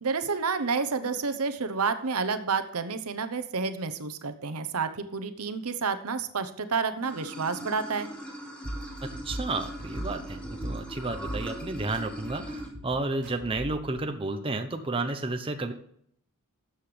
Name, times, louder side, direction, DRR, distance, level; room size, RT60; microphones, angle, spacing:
voice 1, 0.0-8.1, right 5 dB, 85° right, 9 dB, 0.9 m, -30 dB
Water / Sink (filling or washing), 7.0-12.7, equal, 5° left, 2.5 m, -40 dB
sound 1, 8.6-13.9, right 1 dB, 60° right, 3.2 m, -40 dB
voice 2, 9.2-15.7, right 2 dB, 25° right, 6 dB, 0.8 m, -32 dB
13.0 x 7.8 x 3.4 m, 0.68 s
head